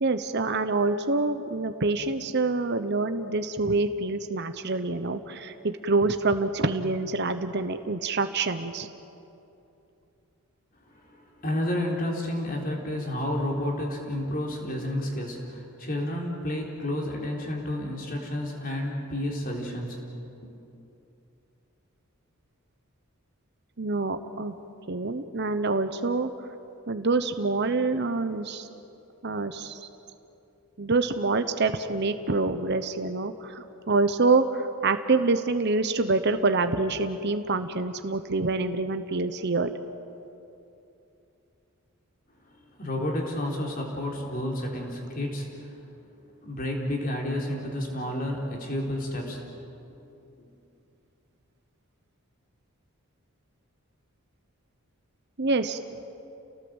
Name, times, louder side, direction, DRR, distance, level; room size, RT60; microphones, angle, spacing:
voice 1, 0.0-8.9 23.8-24.5 24.9-26.3 26.9-28.7 29.2-29.9 30.8-39.7 55.4-55.8, right 3 dB, 50° right, 9 dB, 0.9 m, -26 dB
voice 2, 10.9-20.0 20.4-20.6 42.8-45.8 46.4-49.4 50.4-50.5, left 1 dB, 40° left, -1 dB, 4.0 m, -31 dB
29.0 x 18.5 x 8.0 m, 2.8 s
head